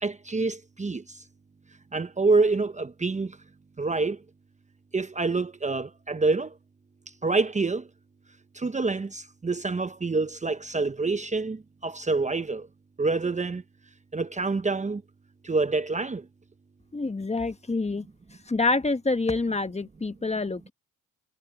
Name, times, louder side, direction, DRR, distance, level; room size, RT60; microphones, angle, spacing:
voice 1, 0.0-1.2 1.9-3.4 3.8-4.2 4.9-6.5 7.2-7.8 8.5-12.7 13.0-13.6 14.1-15.0 15.4-16.2, right 3 dB, 20° right, 1.0 m, -27 dB
voice 2, 16.9-18.1 18.5-20.7, left 3 dB, 20° left, 1.5 m, -27 dB
supercardioid pair, 65°, 35 cm